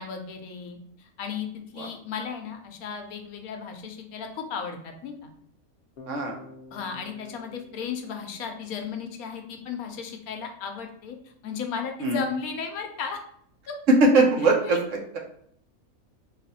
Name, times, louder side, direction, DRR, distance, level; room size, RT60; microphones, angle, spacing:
voice 1, 0.0-1.5 1.7-5.3 6.7-13.2 13.7-13.8 14.6-14.8, left 6 dB, 90° left, 4 dB, 1.1 m, -35 dB
Bass guitar, 6.0-9.9, left 3 dB, 60° left, 0.9 m, -50 dB
voice 2, 6.1-6.4 12.0-12.2 13.9-15.2, right 2 dB, 65° right, 0 dB, 1.1 m, -21 dB
3.7 x 2.4 x 4.1 m, 0.65 s
omnidirectional pair, 1.5 m